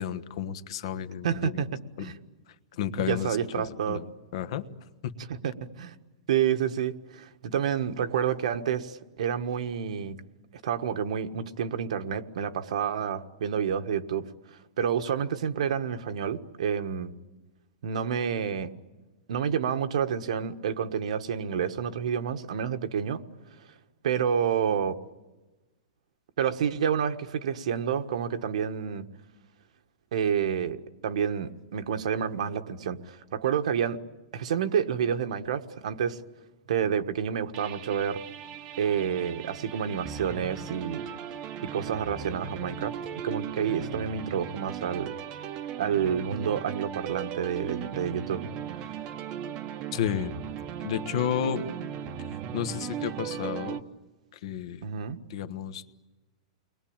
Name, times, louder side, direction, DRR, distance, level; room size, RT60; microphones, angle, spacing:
voice 1, 0.0-1.6 2.0-2.1 2.8-4.0 4.3-4.6 5.0-5.1 49.9-50.3 50.8-51.6 52.5-53.8 54.4-54.8 55.3-55.8, left 9 dB, 50° left, 11 dB, 1.3 m, -31 dB
voice 2, 1.2-1.7 2.0-2.1 3.0-4.0 5.3-6.0 6.3-10.2 10.6-17.1 17.8-18.7 19.3-23.2 24.0-25.0 26.4-29.1 30.1-34.0 34.3-36.2 36.7-38.2 38.8-41.1 41.6-43.0 43.2-45.1 45.8-48.4 48.8-48.9 54.8-55.2, right 8 dB, 70° right, 8 dB, 1.5 m, -29 dB
sound 1, 37.5-53.8, right 9 dB, 25° right, 1.0 m, -37 dB
30.0 x 21.5 x 8.8 m, 1.1 s
supercardioid pair, 170°, 4 cm